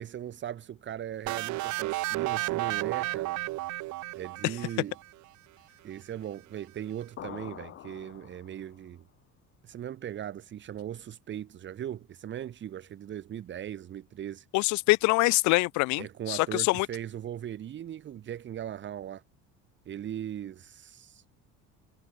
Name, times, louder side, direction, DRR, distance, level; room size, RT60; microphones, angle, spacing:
voice 1, 0.0-3.4 4.1-5.0 5.8-9.0 9.6-14.5 16.0-19.2 19.9-21.2, right 10 dB, 40° right, 2.1 m, -39 dB
sound 1, 1.3-5.0, right 19 dB, 75° right, 1.9 m, -32 dB
sound 2, 7.2-8.9, left 11 dB, 45° left, 3.0 m, -45 dB
voice 2, 14.5-16.9, left 23 dB, 70° left, 0.5 m, -24 dB
cardioid pair, 170°, 30 cm